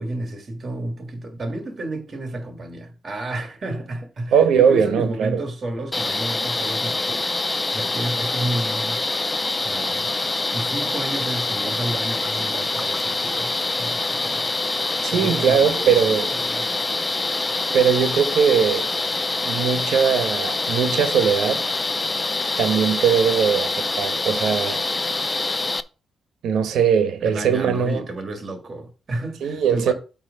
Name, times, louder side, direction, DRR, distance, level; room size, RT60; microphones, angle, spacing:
voice 1, 0.0-9.0 9.6-10.1 10.5-14.5 15.1-16.7 27.2-29.9, right 1 dB, 35° right, 1.6 m, -31 dB
voice 2, 4.3-5.4 15.0-16.2 17.7-18.9 19.4-21.7 22.6-24.8 26.4-28.0 29.4-29.9, right 7 dB, 80° right, 1.1 m, -20 dB
sound 1, 5.9-25.8, left 3 dB, 15° left, 0.4 m, -25 dB
8.7 x 3.0 x 6.3 m
cardioid pair, 155°, 0 cm